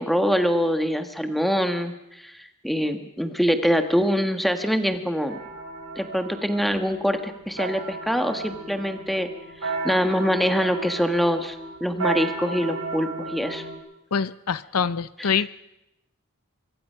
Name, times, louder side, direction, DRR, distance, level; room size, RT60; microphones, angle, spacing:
voice 1, 0.0-1.9 2.2-5.4 5.9-9.3 9.6-11.5 11.8-13.6 15.2-15.4, equal, ahead, 6 dB, 1.5 m, -24 dB
sound 1, 5.3-13.8, right 3 dB, 70° right, 6.2 m, -34 dB
voice 2, 14.1-15.5, left 6 dB, 85° left, 16 dB, 0.8 m, -25 dB
24.5 x 23.5 x 5.7 m, 0.91 s
head